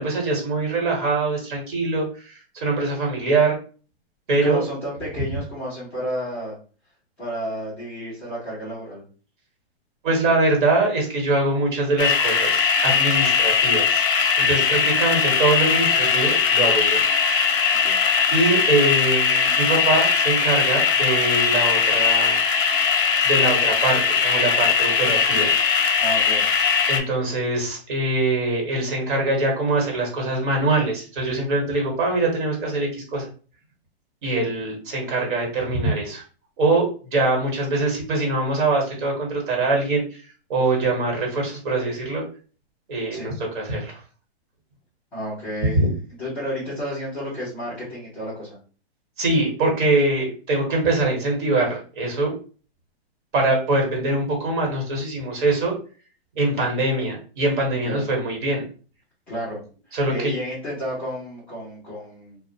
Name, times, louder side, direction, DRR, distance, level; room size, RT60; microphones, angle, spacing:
voice 1, 0.0-3.6 4.3-4.6 10.0-14.0 14.3-17.0 18.3-22.4 23.2-25.5 26.9-33.3 34.2-36.2 36.6-40.2 40.5-42.2 42.9-44.0 49.2-52.3 53.3-55.7 56.3-58.6 59.9-60.3, right 2 dB, 50° right, 1 dB, 1.1 m, -23 dB
voice 2, 4.4-6.5 7.2-9.0 14.6-14.8 17.7-18.0 26.0-26.4 40.8-40.9 43.1-43.3 45.1-45.8 46.2-48.6 56.5-56.8 57.8-58.0 59.3-59.6 60.1-62.4, equal, 5° left, -13 dB, 0.3 m, -31 dB
sound 1, 12.0-27.0, left 6 dB, 55° left, 0.6 m, -20 dB
2.4 x 2.0 x 2.7 m, 0.38 s
hypercardioid pair, 150°, 32 cm